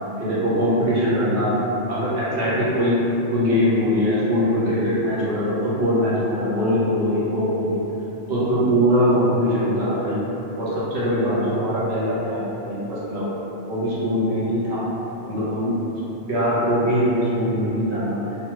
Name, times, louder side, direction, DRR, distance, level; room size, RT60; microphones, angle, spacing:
voice 1, 0.2-1.5 1.9-3.0 3.3-7.8 8.3-10.2 10.6-13.3 13.7-14.8 15.2-15.8 16.3-18.2, equal, 75° right, -9 dB, 1.1 m, -22 dB
3.0 x 2.3 x 2.9 m, 3.0 s
omnidirectional pair, 1.1 m